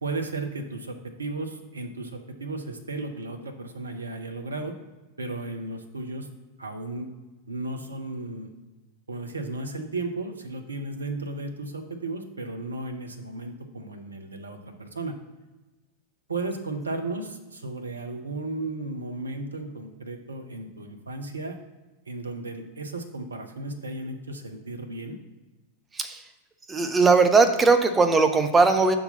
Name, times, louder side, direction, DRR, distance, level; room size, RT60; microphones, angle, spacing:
voice 1, 0.0-4.8 5.2-6.3 6.6-7.1 7.5-8.5 9.1-15.2 16.3-21.6 22.1-25.2, right 2 dB, 75° right, 6 dB, 0.7 m, -34 dB
voice 2, 25.9-26.2 26.7-29.0, right 4 dB, 15° right, 7 dB, 0.6 m, -19 dB
5.7 x 3.8 x 5.5 m, 1.2 s
figure-of-eight pair, 90°, 0 cm